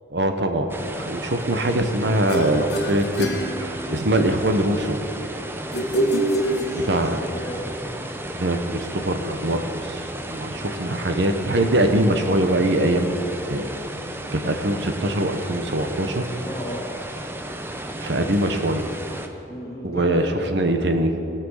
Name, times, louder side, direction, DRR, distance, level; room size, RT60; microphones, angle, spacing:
voice 1, 0.1-5.0 6.7-7.2 8.4-13.8 14.3-16.3 18.0-18.9 19.8-21.1, right 1 dB, 70° right, 6 dB, 1.0 m, -23 dB
sound 1, 0.7-19.3, right 1 dB, 10° right, 0.6 m, -34 dB
sound 2, 2.3-4.2 5.7-7.3, right 1 dB, 60° left, 1.2 m, -25 dB
voice 2, 6.3-7.8 10.5-10.8 16.4-16.9 19.5-20.5, equal, 15° left, -3 dB, 2.0 m, -36 dB
17.5 x 6.0 x 6.4 m, 2.9 s
head